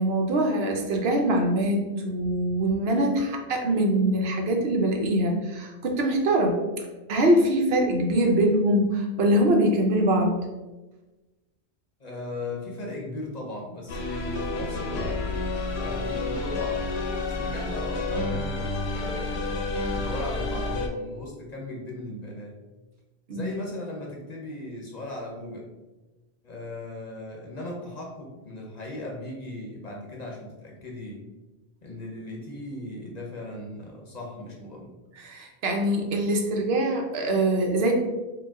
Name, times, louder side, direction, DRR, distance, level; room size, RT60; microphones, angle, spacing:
voice 1, 0.0-6.6 7.1-10.3 23.3-23.6 35.1-37.9, right 1 dB, 70° right, 2 dB, 0.9 m, -23 dB
voice 2, 12.0-15.2 15.8-16.9 17.2-22.5 23.3-25.7 26.4-31.2 31.8-34.9, left 2 dB, 45° left, -1 dB, 0.8 m, -38 dB
sound 1, 13.9-20.9, left 2 dB, 80° left, 0.9 m, -29 dB
4.9 x 2.2 x 3.5 m, 1.1 s
omnidirectional pair, 1.1 m